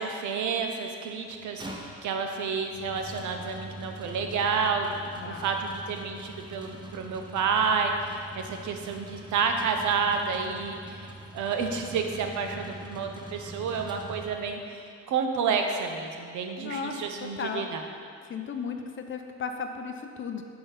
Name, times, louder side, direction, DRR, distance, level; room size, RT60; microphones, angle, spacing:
voice 1, 0.0-5.0 5.2-14.8 15.1-17.8, right 5 dB, 75° right, 4 dB, 0.8 m, -30 dB
sound 1, 1.3-14.7, right 1 dB, 15° right, 0.8 m, -43 dB
voice 2, 5.2-5.5 16.6-17.7 18.3-20.4, left 5 dB, 40° left, 5 dB, 0.6 m, -35 dB
7.0 x 3.8 x 5.6 m, 2.4 s
cardioid pair, 90°, 30 cm